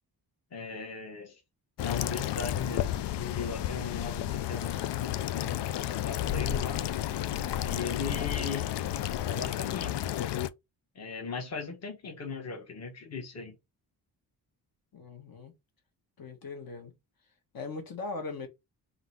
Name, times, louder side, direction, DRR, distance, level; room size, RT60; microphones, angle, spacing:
voice 1, 0.5-1.4 1.8-6.8 7.4-8.7 9.2-10.2 10.9-13.6, left 4 dB, 40° left, 1.2 m, -38 dB
sound 1, 1.8-10.5, left 12 dB, 90° left, 0.5 m, -32 dB
voice 2, 14.9-15.5 16.2-16.9 17.5-18.5, left 3 dB, 60° left, 1.4 m, -39 dB
3.8 x 2.7 x 4.5 m
wide cardioid pair, 145°, 40 cm